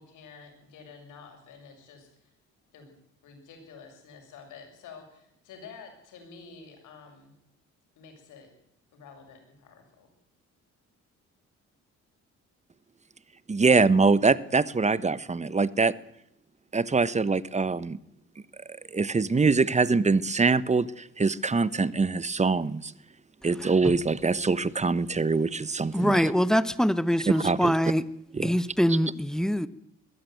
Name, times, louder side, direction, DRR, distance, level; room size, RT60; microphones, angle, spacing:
voice 1, 0.0-2.3 2.7-2.9 3.2-7.3 8.0-8.5 8.9-10.1, left 5 dB, 85° left, 4 dB, 7.4 m, -49 dB
voice 2, 13.5-15.9 16.7-18.0 18.9-22.9 23.4-26.3 27.3-27.7 28.3-28.5, right 4 dB, 25° right, 18 dB, 1.1 m, -24 dB
voice 3, 25.9-28.0 28.4-29.7, equal, ahead, 15 dB, 1.2 m, -24 dB
22.0 x 15.5 x 9.5 m, 0.76 s
cardioid pair, 90°, 30 cm